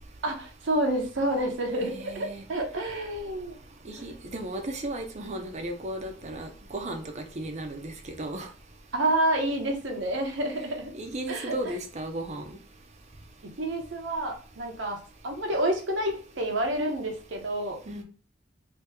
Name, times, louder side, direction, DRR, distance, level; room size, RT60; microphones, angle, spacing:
voice 1, 0.2-3.5 3.9-4.0 8.9-10.9 11.3-11.8 13.6-17.8, right 1 dB, 70° right, 2 dB, 0.8 m, -29 dB
voice 2, 1.8-2.4 3.8-8.5 10.9-12.6 17.9-18.0, right 1 dB, 35° right, 5 dB, 0.6 m, -35 dB
2.9 x 2.7 x 3.4 m, 0.41 s
head